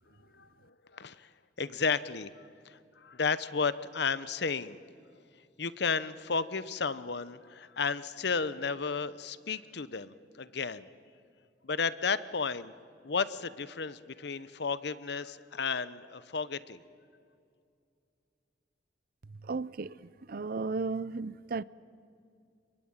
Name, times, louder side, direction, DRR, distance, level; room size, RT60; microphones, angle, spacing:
voice 1, 0.9-1.3 1.6-2.3 2.7-4.8 5.6-10.9 11.6-12.7 13.0-16.8, left 5 dB, 65° left, 0.9 m, -33 dB
voice 2, 19.4-21.6, right 3 dB, 55° right, 0.6 m, -35 dB
28.5 x 22.0 x 9.0 m
head